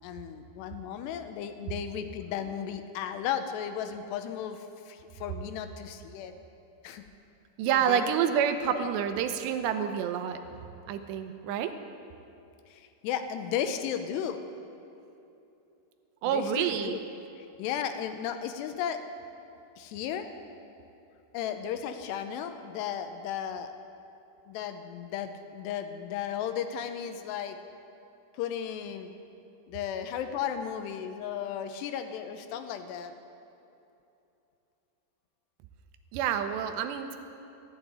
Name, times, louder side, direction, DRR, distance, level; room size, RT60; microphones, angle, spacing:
voice 1, 0.0-6.3 6.8-7.0 7.7-8.1 8.7-8.9 12.7-14.4 16.3-17.0 17.4-19.0 19.8-20.3 21.3-23.7 24.5-27.6 28.3-29.1 29.7-33.1, left 9 dB, 85° left, 8 dB, 2.8 m, -35 dB
voice 2, 7.6-10.4 10.9-11.7 16.2-17.0 36.1-37.2, right 8 dB, 85° right, 8 dB, 2.9 m, -28 dB
13.5 x 8.0 x 9.5 m, 2.8 s
omnidirectional pair, 5.0 m